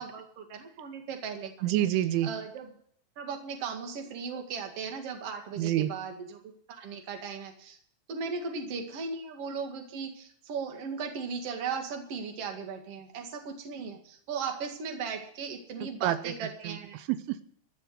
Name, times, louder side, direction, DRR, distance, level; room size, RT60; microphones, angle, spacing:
voice 1, 0.0-1.5 2.2-2.7 3.2-6.4 6.7-7.8 8.1-17.0, right 5 dB, 45° right, 3 dB, 2.1 m, -37 dB
voice 2, 1.6-2.3 5.6-5.9 15.8-17.4, right 13 dB, 90° right, 12 dB, 3.3 m, -29 dB
14.5 x 7.1 x 9.6 m, 0.63 s
omnidirectional pair, 5.4 m